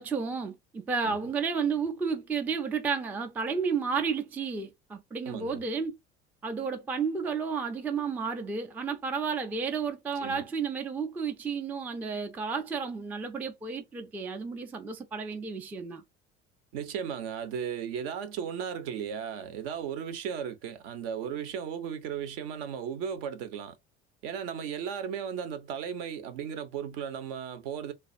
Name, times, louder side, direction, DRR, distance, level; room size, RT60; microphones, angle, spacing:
voice 1, 0.0-5.9 6.4-16.0, right 5 dB, 5° right, 0.4 m, -32 dB
voice 2, 5.3-5.6 10.2-10.4 16.7-23.8 24.2-27.9, right 8 dB, 55° right, 0.7 m, -35 dB
3.2 x 2.3 x 2.4 m
figure-of-eight pair, 65°, 35 cm